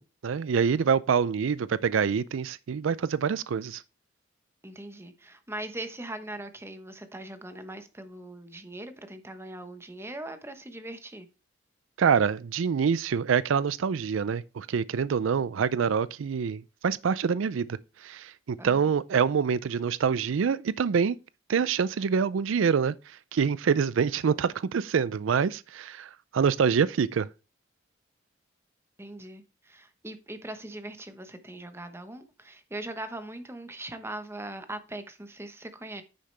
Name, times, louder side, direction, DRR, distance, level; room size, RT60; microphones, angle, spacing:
voice 1, 0.2-3.8 12.0-21.2 21.5-22.9 23.3-27.3, right 6 dB, 85° right, 0.4 m, -26 dB
voice 2, 4.6-11.3 18.6-18.9 29.0-36.0, right 1 dB, 15° right, 1.0 m, -40 dB
9.7 x 6.4 x 3.3 m
head